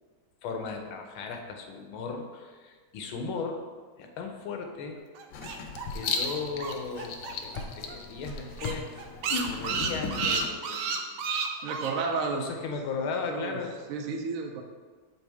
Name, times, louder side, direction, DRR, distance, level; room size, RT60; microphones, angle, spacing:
voice 1, 0.4-3.7 4.0-5.0 5.9-9.0 9.4-11.2 12.3-13.8, left 4 dB, 85° left, 3 dB, 1.6 m, -36 dB
sound 1, 5.2-7.6 7.9-8.0 8.3-8.4 8.6-11.9, right 5 dB, 85° right, 1.4 m, -31 dB
Writing, 5.3-10.5, left 4 dB, 70° left, 1.1 m, -35 dB
voice 2, 11.6-12.5 13.3-13.6 13.9-14.6, right 4 dB, 70° right, 2 dB, 0.8 m, -31 dB
7.2 x 4.0 x 3.4 m, 1.4 s
omnidirectional pair, 2.2 m